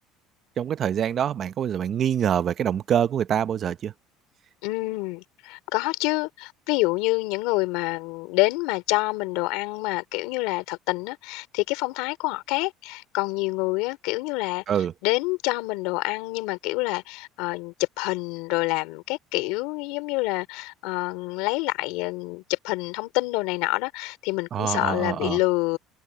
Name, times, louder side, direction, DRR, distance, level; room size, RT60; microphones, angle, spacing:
voice 1, 0.6-3.9 14.7-14.9 24.5-25.4, right 9 dB, 35° right, 0.7 m, -25 dB
voice 2, 4.6-14.6 15.0-25.8, left 23 dB, 80° left, 3.6 m, -27 dB
cardioid pair, 150°, 0 cm